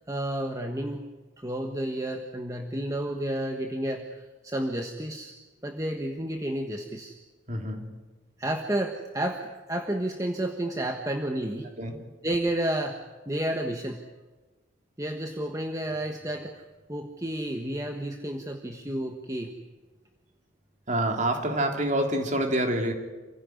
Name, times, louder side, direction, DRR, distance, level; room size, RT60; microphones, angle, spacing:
voice 1, 0.1-1.0 1.4-5.3 5.6-7.1 8.4-11.7 12.2-13.0 13.3-14.0 15.0-16.6 16.9-19.5, right 1 dB, 15° right, 4 dB, 1.3 m, -31 dB
voice 2, 7.5-7.9 11.8-12.0 20.9-22.9, right 1 dB, 35° right, 3 dB, 3.4 m, -27 dB
27.5 x 16.5 x 9.5 m, 1.2 s
head